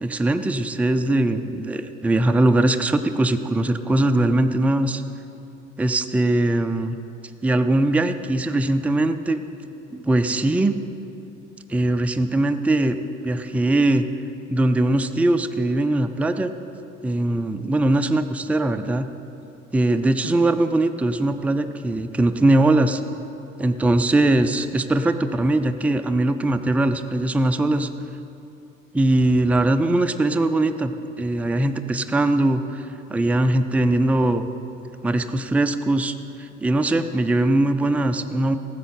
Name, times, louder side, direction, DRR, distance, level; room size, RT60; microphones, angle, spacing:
voice 1, 0.0-5.0 5.8-7.0 7.4-9.4 9.9-10.7 11.7-13.0 13.2-14.1 14.5-16.5 17.0-19.1 19.7-23.2 23.6-28.1 28.9-34.5 35.0-38.6, right 1 dB, 5° right, 8 dB, 0.5 m, -21 dB
18.5 x 7.5 x 5.7 m, 2.8 s
figure-of-eight pair, 55°, 38 cm